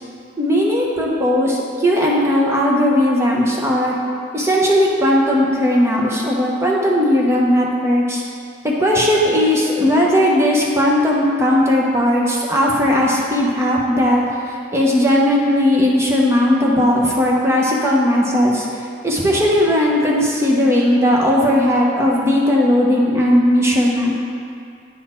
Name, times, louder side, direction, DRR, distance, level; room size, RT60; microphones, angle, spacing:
voice 1, 0.4-3.9 4.3-8.2 8.8-18.7 19.0-24.2, left 1 dB, 15° right, -3 dB, 0.8 m, -17 dB
9.0 x 4.0 x 4.3 m, 2.3 s
head